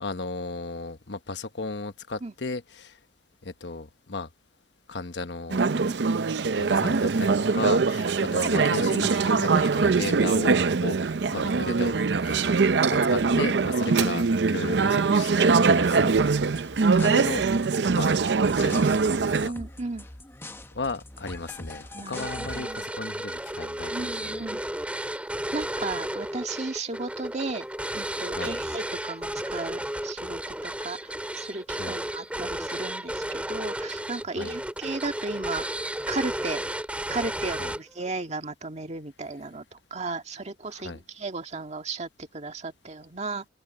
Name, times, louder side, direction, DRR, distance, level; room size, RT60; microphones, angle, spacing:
voice 1, 0.0-3.0 3.4-4.3 4.9-5.7 6.5-12.5 12.9-16.2 17.0-17.5 17.9-18.1 18.5-19.5 20.7-24.5 28.3-28.5 31.8-32.0 34.3-34.5 37.6-37.7 40.7-41.0, left 3 dB, 85° left, 1.2 m, -35 dB
Conversation / Chatter, 5.5-19.5, right 4 dB, 75° right, 0.6 m, -22 dB
sound 1, 16.1-22.9, left 1 dB, 15° left, 1.0 m, -43 dB
voice 2, 19.4-20.1 21.9-22.9 23.9-24.6 25.5-27.7 27.9-36.6 37.1-43.5, right 3 dB, 40° right, 1.8 m, -35 dB
sound 2, 22.2-38.1, right 1 dB, 10° right, 3.8 m, -33 dB
open air
head